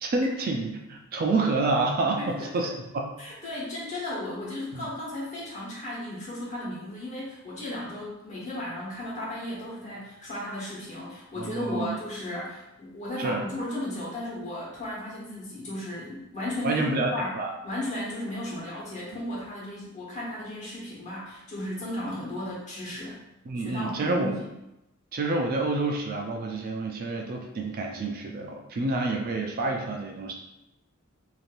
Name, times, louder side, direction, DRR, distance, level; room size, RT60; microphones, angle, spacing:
voice 1, 0.0-2.7 2.9-3.0 4.7-4.8 11.4-11.9 13.2-13.4 16.6-17.1 17.3-17.5 23.5-24.3 25.1-30.3, right 3 dB, 45° right, 2 dB, 0.4 m, -28 dB
voice 2, 2.2-2.7 3.2-17.4 17.6-23.2 23.6-24.5, left 1 dB, 35° left, -7 dB, 1.2 m, -35 dB
3.2 x 2.7 x 2.5 m, 0.91 s
head